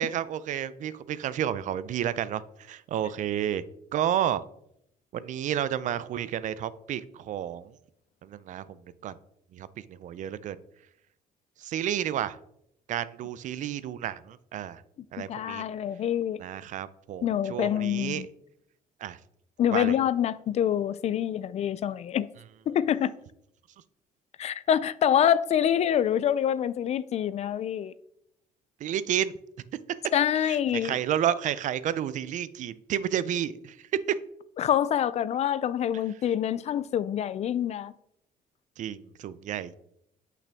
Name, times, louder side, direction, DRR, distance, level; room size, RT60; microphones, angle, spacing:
voice 1, 0.0-3.6 3.9-4.4 5.1-7.7 8.2-8.8 9.0-9.2 9.5-10.6 11.6-12.4 12.9-14.8 15.1-15.6 16.4-18.3 19.0-19.2 19.7-20.0 28.8-29.3 30.4-33.8 34.1-34.2 38.8-39.7, right 10 dB, 55° right, 0.4 m, -31 dB
voice 2, 15.2-16.4 17.2-18.3 19.6-22.3 22.7-23.1 24.4-27.9 30.1-30.9 34.6-37.9, left 10 dB, 45° left, 0.4 m, -26 dB
8.3 x 5.8 x 3.5 m
cardioid pair, 130°, 15 cm